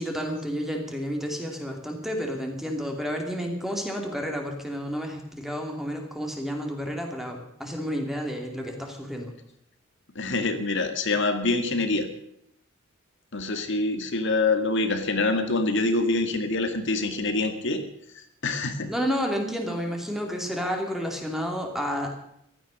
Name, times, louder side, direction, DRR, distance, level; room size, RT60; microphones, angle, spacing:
voice 1, 0.0-9.3 18.9-22.2, equal, ahead, 2 dB, 2.7 m, -31 dB
voice 2, 10.2-12.1 13.3-17.8 18.1-18.9, left 2 dB, 60° left, 8 dB, 2.1 m, -25 dB
15.5 x 13.5 x 6.3 m, 0.73 s
head